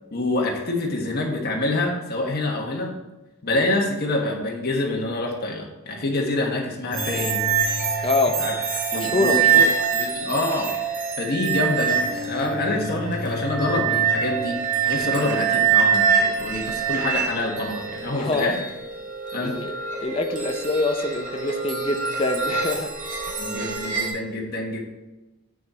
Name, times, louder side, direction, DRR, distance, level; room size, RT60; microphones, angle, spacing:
voice 1, 0.1-2.9 3.4-7.4 8.4-8.5 8.9-9.6 9.9-10.7 11.2-18.6 19.3-19.6 23.4-24.8, left 2 dB, 45° left, -1 dB, 1.4 m, -26 dB
sound 1, 6.9-24.1, right 6 dB, 35° right, 1.7 m, -25 dB
voice 2, 8.0-8.4 8.9-9.7 18.1-18.5 19.4-22.9 23.3-23.4, left 2 dB, 25° left, 5 dB, 0.6 m, -25 dB
7.8 x 6.3 x 4.3 m, 1.1 s
head